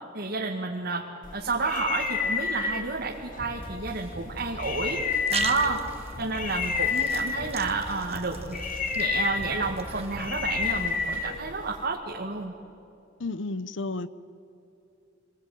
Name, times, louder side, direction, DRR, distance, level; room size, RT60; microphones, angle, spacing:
voice 1, 0.1-1.0 1.3-5.0 5.3-5.8 6.2-8.6 9.0-12.5, right 3 dB, 55° right, -1 dB, 2.1 m, -30 dB
sound 1, 1.2-11.9, left 5 dB, 45° left, 1.8 m, -31 dB
sound 2, 3.4-11.4, equal, 10° right, 4.1 m, -43 dB
sound 3, 4.9-11.1, right 7 dB, 35° right, 1.2 m, -40 dB
voice 2, 13.2-14.1, left 3 dB, 75° left, 15 dB, 0.9 m, -32 dB
25.5 x 21.0 x 9.3 m, 2.8 s
head